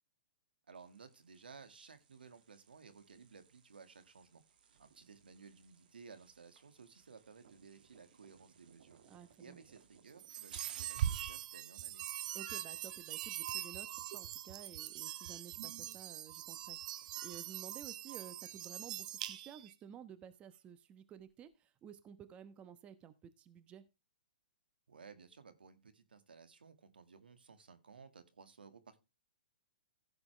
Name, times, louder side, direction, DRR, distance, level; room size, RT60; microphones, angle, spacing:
sound 1, 0.7-11.5, right 7 dB, 70° right, 2.1 m, -61 dB
voice 1, 0.7-4.4 4.8-9.0 9.4-12.0 24.9-29.0, right 5 dB, 90° right, 11 dB, 1.9 m, -57 dB
voice 2, 9.0-9.6 12.3-23.9, right 8 dB, 25° right, 12 dB, 1.1 m, -53 dB
sound 2, 10.2-19.7, right 12 dB, 50° right, 0.9 m, -42 dB
15.0 x 7.1 x 3.4 m, 0.27 s
hypercardioid pair, 135°, 5 cm